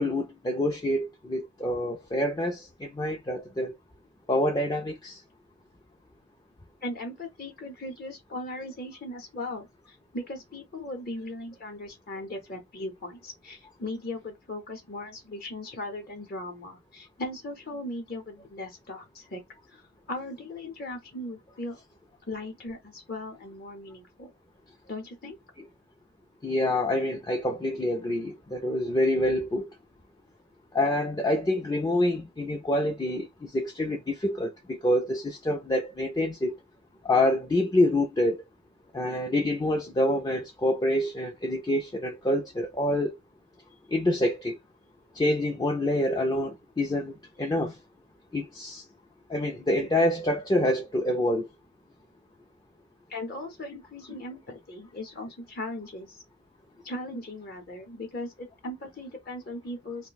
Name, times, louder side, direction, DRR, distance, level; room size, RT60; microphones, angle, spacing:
voice 1, 0.0-3.7 4.3-5.2 26.4-29.7 30.7-36.5 37.0-38.4 38.9-43.2 43.9-44.6 45.1-47.8 48.3-48.8 49.3-51.5, left 1 dB, 20° left, 0.4 m, -27 dB
voice 2, 6.8-19.4 19.7-19.8 20.1-21.8 22.3-24.3 24.9-25.4 53.1-56.2 56.8-60.1, left 1 dB, 45° left, 0.7 m, -38 dB
2.6 x 2.1 x 3.9 m
head